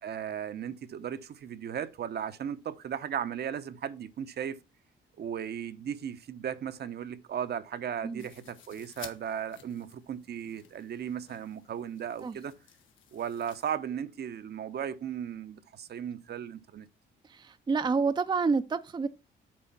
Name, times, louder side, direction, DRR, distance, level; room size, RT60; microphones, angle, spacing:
voice 1, 0.0-4.6 5.2-12.5 13.1-16.9, right 8 dB, 55° right, 0.8 m, -36 dB
sound 1, 8.2-13.8, left 9 dB, 75° left, 1.4 m, -53 dB
voice 2, 17.2-19.1, right 4 dB, 25° right, 0.5 m, -28 dB
7.7 x 4.4 x 5.8 m
cardioid pair, 90°, 20 cm